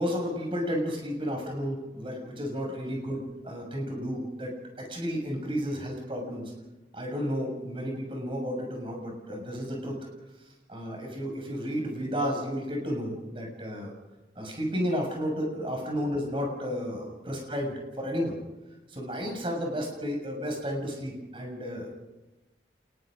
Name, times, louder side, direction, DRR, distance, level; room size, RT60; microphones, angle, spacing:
voice 1, 0.0-6.5 6.9-10.0 10.7-13.9 14.3-18.4 18.9-21.9, equal, 30° right, 1 dB, 6.6 m, -32 dB
28.5 x 20.5 x 5.2 m, 1.1 s
head